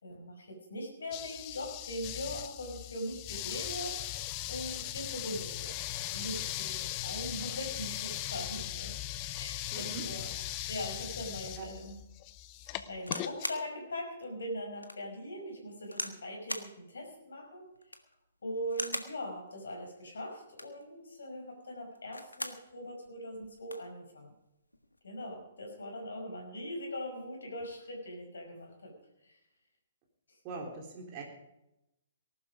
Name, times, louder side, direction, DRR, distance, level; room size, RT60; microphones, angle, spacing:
voice 1, 0.0-8.9 9.3-12.0 12.9-17.7 18.4-24.3 25.0-29.0 29.2-29.4, equal, 65° left, 2 dB, 5.7 m, -41 dB
sound 1, 1.1-13.5, left 14 dB, 30° left, 0.9 m, -39 dB
voice 2, 9.7-10.0 11.6-11.7 30.4-31.2, right 4 dB, 30° right, 0 dB, 3.6 m, -41 dB
sound 2, 13.0-13.7 14.2-14.3 14.8-15.0 15.9-16.2 16.5-16.7 17.8-18.1 18.7-19.2 20.4-20.8 21.9-22.6 23.1-23.2 23.4-23.9 24.7-25.0, left 1 dB, 85° left, 1.4 m, -39 dB
19.0 x 12.0 x 5.0 m, 0.88 s
figure-of-eight pair, 125°, 0 cm